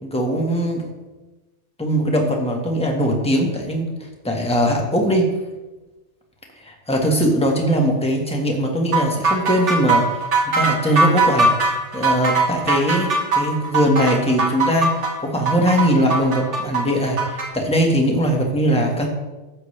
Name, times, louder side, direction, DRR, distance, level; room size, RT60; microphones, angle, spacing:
voice 1, 0.0-0.9 1.8-5.3 6.6-11.5 11.9-19.1, equal, 5° left, 0 dB, 1.4 m, -20 dB
sound 1, 8.9-17.5, right 3 dB, 75° right, 1.9 m, -20 dB
13.0 x 8.1 x 3.3 m, 1.1 s
omnidirectional pair, 1.2 m